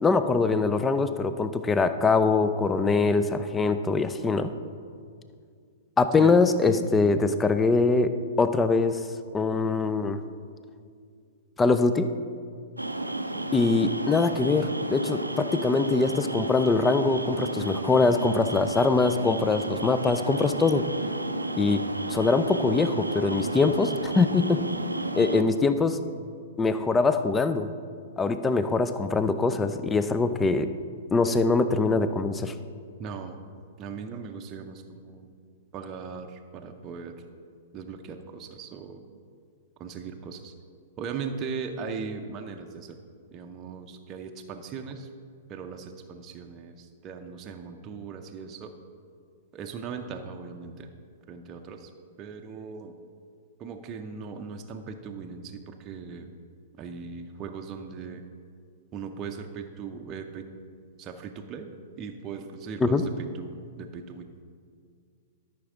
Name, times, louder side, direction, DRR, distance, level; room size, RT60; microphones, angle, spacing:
voice 1, 0.0-4.5 6.0-9.1 9.3-10.2 11.6-12.1 13.5-20.9 21.6-21.8 22.1-24.7 25.1-26.0 26.6-27.7 28.2-30.7 31.1-32.5 62.8-63.0, left 3 dB, 15° left, 11 dB, 0.4 m, -23 dB
sound 1, 12.8-25.4, right 2 dB, 90° right, 0.5 m, -32 dB
voice 2, 33.0-33.4 33.8-35.3 35.7-37.2 37.7-39.0 39.8-40.5 41.0-43.0 43.3-45.1 45.5-48.7 49.5-50.9 51.3-51.9 52.2-52.9 53.6-56.3 56.8-58.2 58.9-60.5 61.0-64.3, right 5 dB, 30° right, 4 dB, 0.7 m, -39 dB
12.5 x 5.9 x 3.8 m, 2.2 s
figure-of-eight pair, 105°, 0 cm